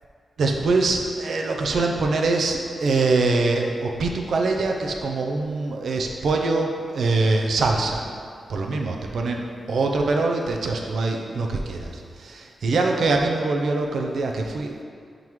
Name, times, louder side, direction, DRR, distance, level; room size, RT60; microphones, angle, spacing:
voice 1, 0.4-8.1 8.5-11.9 12.2-14.8, right 3 dB, 65° right, 2 dB, 0.6 m, -23 dB
10.5 x 3.8 x 3.1 m, 2.2 s
wide cardioid pair, 150°, 0 cm